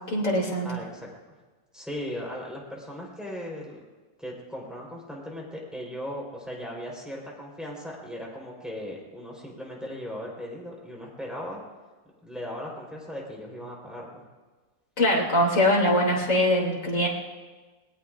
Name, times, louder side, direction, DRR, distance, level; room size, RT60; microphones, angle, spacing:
voice 1, 0.1-0.8 15.0-17.1, left 1 dB, 50° left, -4 dB, 3.4 m, -22 dB
voice 2, 0.6-1.1 1.7-3.8 4.2-11.6 12.2-14.2 16.1-16.2, equal, ahead, -4 dB, 4.3 m, -38 dB
26.5 x 20.5 x 2.6 m, 1.3 s
omnidirectional pair, 1.7 m